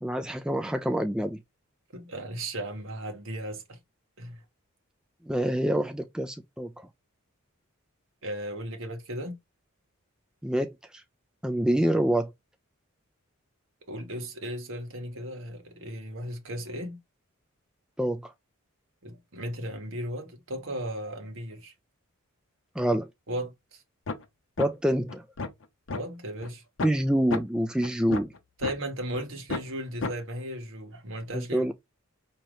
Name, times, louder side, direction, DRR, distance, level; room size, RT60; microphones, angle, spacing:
voice 1, 0.0-1.4 5.3-6.7 10.4-10.7 11.4-12.3 18.0-18.3 22.8-23.1 24.6-25.2 26.8-28.3 31.3-31.7, right 1 dB, 5° right, 0.3 m, -26 dB
voice 2, 1.9-3.8 4.2-4.4 8.2-9.3 13.9-17.0 19.0-21.7 23.3-23.8 25.9-26.6 28.6-31.6, right 1 dB, 60° right, 1.3 m, -36 dB
sound 1, 24.1-24.2 24.6-24.7 25.1-26.0 26.4-26.5 26.8-27.0 27.3-27.4 27.8-28.7 29.1-29.2 29.5-29.7 30.0-30.1, left 3 dB, 55° left, 0.7 m, -32 dB
5.1 x 2.9 x 3.1 m
head